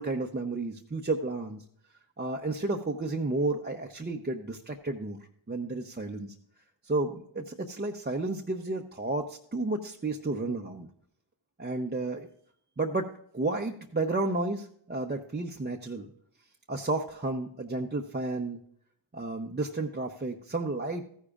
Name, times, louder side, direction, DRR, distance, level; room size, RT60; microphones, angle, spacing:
voice 1, 0.0-1.6 2.2-5.2 5.5-6.3 6.8-10.9 11.6-12.3 12.8-16.1 16.7-18.6 19.1-21.1, right 2 dB, 20° right, 1 dB, 0.7 m, -32 dB
13.5 x 9.9 x 2.4 m, 0.67 s
cardioid pair, 45°, 49 cm